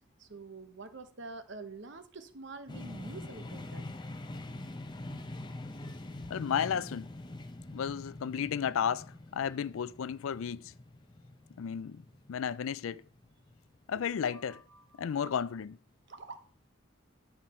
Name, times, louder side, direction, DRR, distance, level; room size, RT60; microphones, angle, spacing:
voice 1, 0.2-3.9 13.9-14.0 14.3-15.2 16.1-16.5, right 3 dB, 55° right, 1.0 m, -47 dB
sound 1, 2.7-14.5, left 2 dB, 20° left, 0.6 m, -45 dB
voice 2, 6.3-7.1 7.7-9.1 9.3-10.7 11.6-12.0 12.3-13.0 13.9-14.6 15.0-15.7, left 7 dB, 75° left, 0.4 m, -33 dB
11.0 x 5.7 x 4.3 m
head